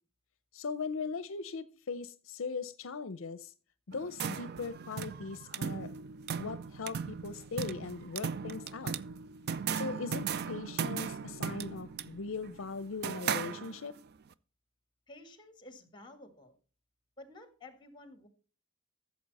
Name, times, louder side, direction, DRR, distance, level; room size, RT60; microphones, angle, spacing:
voice 1, 0.5-3.5 3.9-5.9 6.4-9.0 9.7-14.0, left 4 dB, 70° left, 14 dB, 0.6 m, -39 dB
sound 1, 3.9-14.1, right 7 dB, 50° right, 0.4 m, -37 dB
voice 2, 15.1-16.6 17.2-18.3, left 2 dB, 20° left, 9 dB, 1.8 m, -52 dB
13.5 x 7.2 x 4.1 m, 0.37 s
head